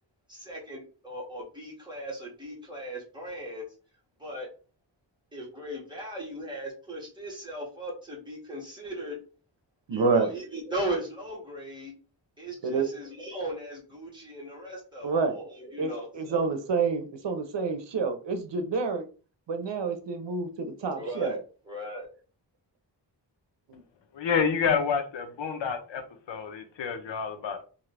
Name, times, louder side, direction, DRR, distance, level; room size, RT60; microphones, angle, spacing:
voice 1, 0.3-3.7 4.2-4.5 5.3-9.2 9.9-11.9 12.4-16.5 20.9-21.4 21.6-22.1, right 1 dB, 10° right, 1.7 m, -37 dB
voice 2, 9.9-10.3 12.6-12.9 15.0-15.4 15.8-19.0 19.5-21.4 23.7-23.8, right 4 dB, 75° right, 0.8 m, -28 dB
voice 3, 24.1-26.0 26.3-27.6, left 6 dB, 80° left, 0.8 m, -28 dB
3.7 x 2.7 x 3.3 m
wide cardioid pair, 145°, 44 cm